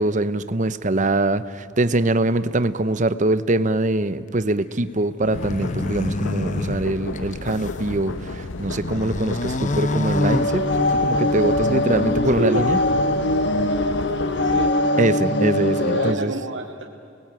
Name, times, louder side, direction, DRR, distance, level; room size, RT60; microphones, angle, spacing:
voice 1, 0.0-12.8 15.0-16.3, right 2 dB, 40° right, 13 dB, 0.9 m, -23 dB
sound 1, 5.2-7.9 8.3-11.2, left 2 dB, 40° left, 0.9 m, -28 dB
sound 2, 5.3-14.7, left 3 dB, 85° left, 1.0 m, -33 dB
sound 3, 10.1-16.1, left 1 dB, 60° left, 1.3 m, -22 dB
voice 2, 12.4-12.8 14.4-14.7 15.9-16.9, right 1 dB, 65° right, 0 dB, 1.6 m, -27 dB
30.0 x 20.0 x 9.0 m, 2.5 s
head